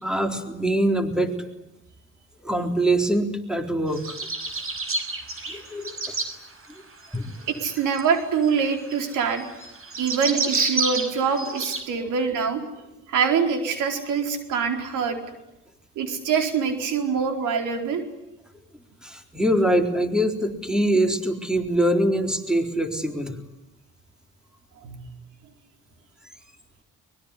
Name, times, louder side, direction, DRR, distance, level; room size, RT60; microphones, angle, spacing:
voice 1, 0.0-1.3 2.4-4.2 5.5-6.0 7.1-7.3 19.0-23.4, right 1 dB, ahead, 5 dB, 3.9 m, -23 dB
sound 1, 3.9-6.3 7.0-11.8, right 3 dB, 45° right, 5.9 m, -29 dB
voice 2, 7.5-9.4 10.0-12.6 13.1-15.2 16.0-18.0 24.8-25.0, right 6 dB, 85° right, 5 dB, 4.5 m, -24 dB
24.0 x 22.0 x 10.0 m, 0.89 s
cardioid pair, 90°, 30 cm